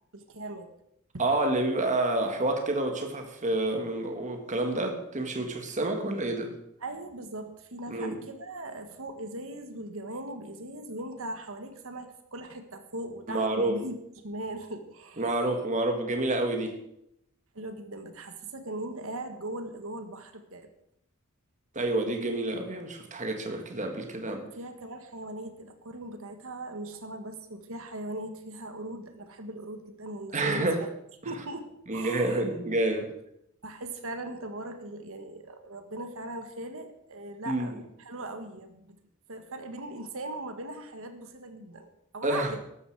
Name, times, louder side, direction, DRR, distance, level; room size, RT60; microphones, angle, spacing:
voice 1, 0.1-0.7 6.8-15.5 17.5-20.7 24.4-30.9 31.2-32.4 33.6-39.0 39.3-41.9 42.1-42.6, right 1 dB, 65° right, 7 dB, 1.6 m, -39 dB
voice 2, 1.2-6.5 7.9-8.2 13.3-13.8 15.2-16.8 21.8-24.4 30.3-30.8 31.9-33.1 37.5-37.7 42.2-42.5, right 2 dB, 35° right, 4 dB, 1.8 m, -28 dB
13.5 x 12.5 x 4.9 m, 0.77 s
head